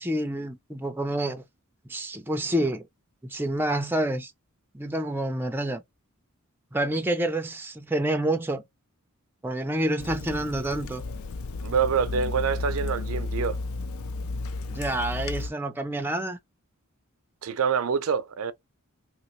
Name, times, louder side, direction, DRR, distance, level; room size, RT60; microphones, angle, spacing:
voice 1, 0.0-1.4 1.9-2.9 3.2-4.3 4.7-5.8 6.7-8.6 9.4-11.0 14.7-16.4, right 1 dB, 10° right, 0.4 m, -28 dB
Water tap faucet / Sink (filling or washing), 10.0-15.5, left 3 dB, 75° left, 0.4 m, -33 dB
voice 2, 11.6-13.6 17.4-18.5, right 6 dB, 75° right, 0.4 m, -26 dB
2.9 x 2.9 x 3.0 m
head